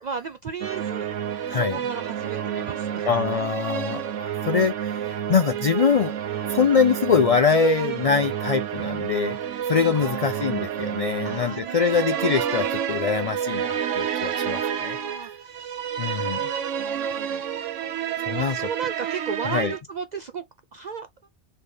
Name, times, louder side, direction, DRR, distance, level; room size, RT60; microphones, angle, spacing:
voice 1, 0.0-1.2 1.5-3.1 9.9-10.5 11.2-12.3 14.6-15.9 16.8-17.5 18.3-20.4 20.7-21.1, right 5 dB, 60° right, 0.4 m, -35 dB
sound 1, 0.6-19.8, right 9 dB, 90° right, 1.1 m, -29 dB
voice 2, 1.5-1.8 3.1-6.1 6.5-9.4 9.7-15.0 15.2-15.3 16.0-16.5 18.2-18.6 19.4-19.7, left 6 dB, 65° left, 0.3 m, -23 dB
4.4 x 3.4 x 3.3 m
omnidirectional pair, 1.2 m